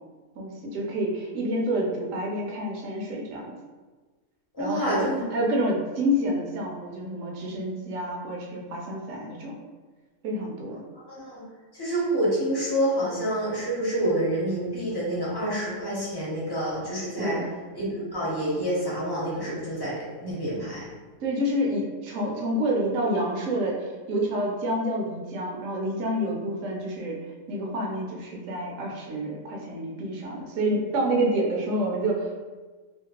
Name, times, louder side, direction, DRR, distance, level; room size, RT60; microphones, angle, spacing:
voice 1, 0.4-3.5 4.6-9.5 10.2-10.8 17.2-17.4 21.2-27.2 27.5-32.3, right 1 dB, 65° right, -1 dB, 0.9 m, -28 dB
voice 2, 4.5-5.2 11.1-11.4 11.7-17.3 17.7-20.8, right 1 dB, 30° left, -7 dB, 0.4 m, -28 dB
2.8 x 2.7 x 2.9 m, 1.3 s
omnidirectional pair, 1.8 m